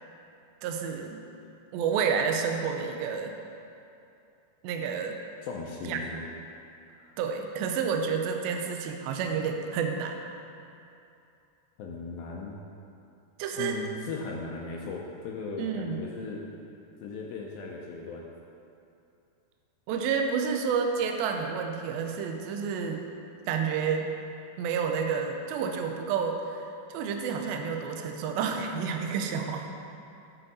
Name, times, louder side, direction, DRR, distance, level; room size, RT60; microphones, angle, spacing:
voice 1, 0.6-1.2 1.7-3.3 4.6-5.2 5.8-6.0 7.2-10.2 13.4-13.8 15.6-16.0 19.9-23.1 23.5-24.2 24.6-29.7, right 6 dB, 80° right, 3 dB, 2.2 m, -30 dB
voice 2, 5.4-6.2 7.0-7.2 11.8-12.6 13.5-16.5 17.0-18.3, left 4 dB, 80° left, -1 dB, 2.2 m, -37 dB
11.5 x 4.5 x 4.1 m, 2.7 s
omnidirectional pair, 4.6 m